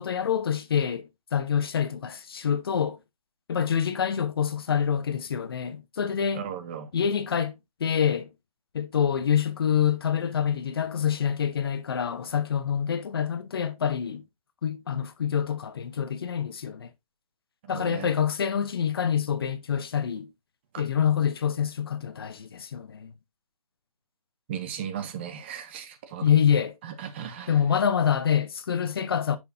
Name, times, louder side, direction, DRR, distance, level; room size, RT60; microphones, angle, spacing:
voice 1, 0.0-3.0 3.5-6.4 6.9-7.5 7.8-8.3 8.7-14.2 14.6-16.9 17.7-20.3 20.8-23.1 26.2-26.8 27.5-29.4, left 8 dB, 40° left, 0.8 m, -26 dB
voice 2, 6.3-6.9 17.7-18.1 20.7-20.8 24.5-26.3 26.8-27.6, right 8 dB, 20° right, 0.7 m, -36 dB
9.3 x 6.2 x 2.6 m
figure-of-eight pair, 155°, 19 cm